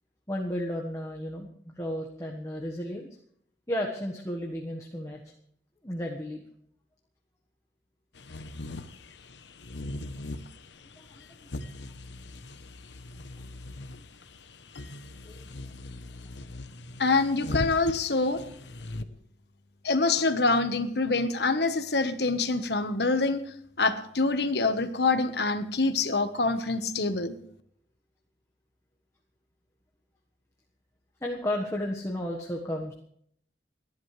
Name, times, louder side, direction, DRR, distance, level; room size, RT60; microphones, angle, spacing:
voice 1, 0.3-3.1 3.7-5.2 5.8-6.4 8.7-8.8 11.1-11.2 15.2-15.5 31.2-32.9, left 1 dB, 15° left, 0 dB, 1.5 m, -33 dB
sound 1, 8.1-19.0, left 2 dB, 85° left, 1.0 m, -40 dB
voice 2, 17.0-18.4 19.8-23.4 23.8-27.4, left 3 dB, 65° left, 9 dB, 1.3 m, -25 dB
29.5 x 11.0 x 3.4 m, 0.66 s
head